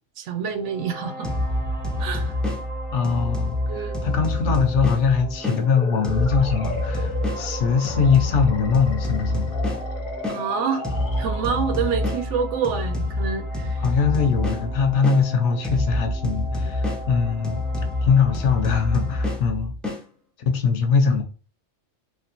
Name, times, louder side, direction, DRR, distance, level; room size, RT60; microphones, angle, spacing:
voice 1, 0.2-1.3 2.0-2.4 3.7-4.0 10.3-10.9 11.2-13.8, right 6 dB, 75° right, 0.9 m, -27 dB
sound 1, 0.5-19.4, right 1 dB, 35° right, 0.6 m, -39 dB
sound 2, 1.2-5.6 6.0-10.4 10.8-15.2 15.6-20.0, left 1 dB, ahead, 0.4 m, -27 dB
voice 2, 2.9-9.5 13.8-19.7 20.5-21.2, left 5 dB, 75° left, 0.9 m, -22 dB
sound 3, 5.6-12.1, left 2 dB, 50° left, 0.8 m, -36 dB
3.1 x 2.4 x 2.8 m
omnidirectional pair, 1.2 m